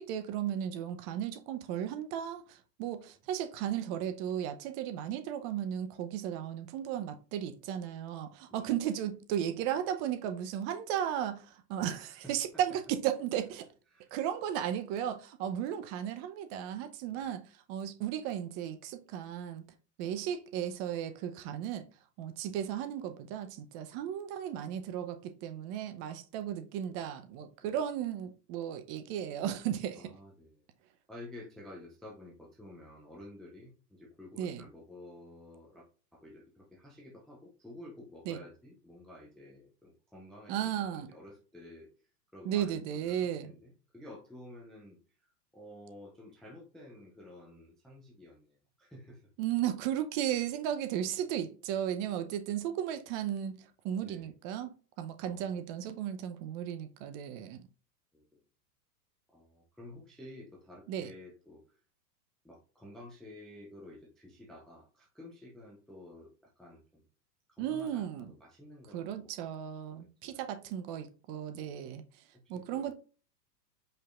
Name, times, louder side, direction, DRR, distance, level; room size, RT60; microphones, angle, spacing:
voice 1, 0.0-13.7 14.1-17.4 17.7-19.6 20.0-21.8 22.2-30.0 34.4-34.6 38.3-38.4 40.5-41.1 42.4-43.5 49.4-53.5 53.8-57.7 60.9-61.1 67.6-68.3 68.9-72.0 72.5-73.0, right 10 dB, 35° right, 0.7 m, -35 dB
voice 2, 11.8-12.3 13.9-14.1 17.1-17.3 27.6-27.7 30.0-30.7 31.1-35.9 36.1-41.9 42.3-49.2 54.0-54.3 55.2-55.6 58.1-58.4 59.3-61.8 62.4-67.1 67.5-69.5 69.9-70.6 71.6-71.7 72.3-73.0, left 1 dB, ahead, 0.3 m, -52 dB
5.2 x 4.2 x 2.4 m
hypercardioid pair, 110°, 48 cm